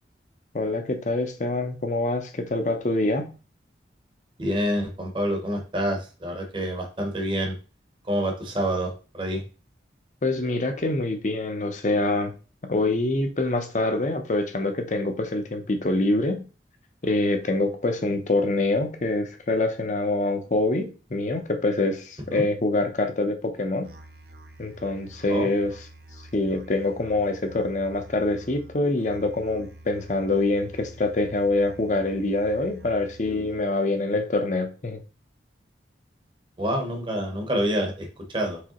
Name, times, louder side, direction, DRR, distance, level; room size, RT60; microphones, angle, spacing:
voice 1, 0.5-3.3 10.2-12.4 12.7-16.4 17.0-23.9 24.6-25.7 26.3-35.0, left 2 dB, 40° left, 6 dB, 0.7 m, -25 dB
voice 2, 4.4-7.6 8.0-9.4 22.3-22.4 25.3-25.5 36.6-38.6, equal, 25° right, 2 dB, 0.9 m, -27 dB
Musical instrument, 23.8-33.8, right 1 dB, 55° right, 0.6 m, -47 dB
4.8 x 3.3 x 2.9 m, 0.34 s
head